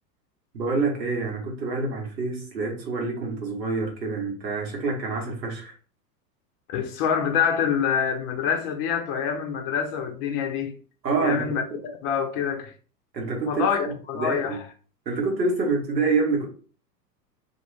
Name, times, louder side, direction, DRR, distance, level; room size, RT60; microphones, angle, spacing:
voice 1, 0.5-5.7 11.0-11.8 13.1-14.6 15.1-16.5, right 3 dB, 85° right, 1.1 m, -27 dB
voice 2, 6.7-10.7 11.2-11.6 12.0-12.7 13.5-14.7, left 7 dB, 35° left, 0.5 m, -26 dB
2.4 x 2.2 x 3.0 m
hypercardioid pair, 95°, 49 cm